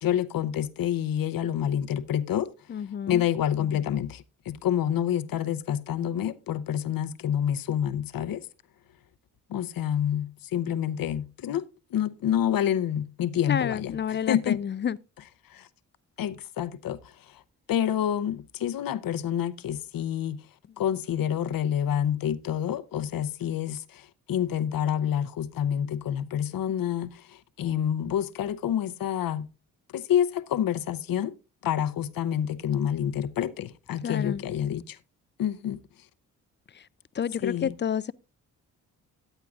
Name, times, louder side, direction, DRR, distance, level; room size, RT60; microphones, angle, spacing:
voice 1, 0.0-2.5 3.1-8.5 9.5-14.6 15.5-15.7 16.2-17.4 17.7-20.4 20.8-29.5 29.9-31.3 31.6-35.0 35.4-35.8 37.4-37.7, left 10 dB, 60° left, 0.8 m, -28 dB
voice 2, 2.7-3.2 13.5-15.0 34.0-34.4 37.2-38.1, left 8 dB, 30° left, 0.4 m, -29 dB
14.0 x 9.0 x 2.4 m
hypercardioid pair, 45°, 40 cm